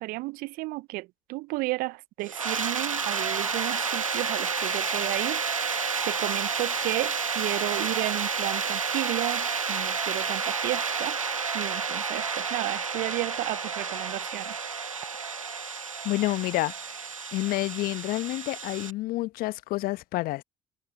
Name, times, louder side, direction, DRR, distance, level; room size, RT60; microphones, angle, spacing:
voice 1, 0.0-5.7 6.0-11.2 11.5-14.6, right 22 dB, 60° right, 0.7 m, -33 dB
sound 1, 2.2-18.9, right 5 dB, 90° right, 1.6 m, -30 dB
voice 2, 16.0-17.0 17.3-20.4, left 18 dB, 60° left, 1.4 m, -29 dB
figure-of-eight pair, 50°, 17 cm